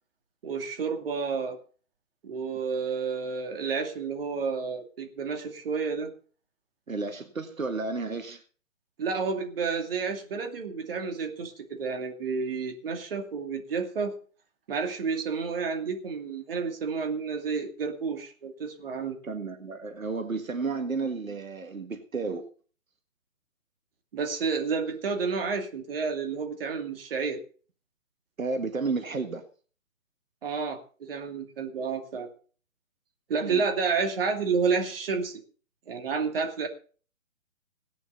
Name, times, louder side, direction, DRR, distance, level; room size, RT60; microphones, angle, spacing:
voice 1, 0.4-1.6 2.2-6.1 9.0-14.1 14.7-19.2 24.1-27.4 30.4-32.3 33.3-35.4 35.9-36.7, right 5 dB, 45° right, 5 dB, 2.5 m, -30 dB
voice 2, 6.9-8.4 19.2-22.5 28.4-29.5 33.4-33.6, right 4 dB, 75° right, 7 dB, 1.9 m, -32 dB
17.5 x 11.0 x 4.1 m, 0.40 s
figure-of-eight pair, 140°, 41 cm